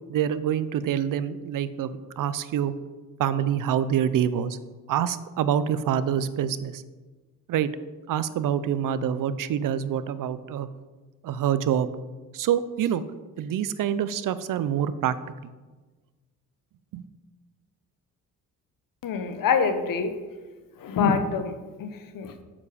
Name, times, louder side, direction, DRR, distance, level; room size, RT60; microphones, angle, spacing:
voice 1, 0.1-2.7 3.2-4.6 4.9-6.8 7.5-7.7 8.1-10.7 11.2-11.9 12.3-13.0 13.4-15.2 15.4-15.5 16.9-17.0, right 9 dB, 65° right, 14 dB, 0.6 m, -26 dB
voice 2, 19.0-20.2 20.8-22.4, left 5 dB, 70° left, 9 dB, 1.0 m, -26 dB
7.3 x 6.9 x 5.0 m, 1.3 s
cardioid pair, 100°, 34 cm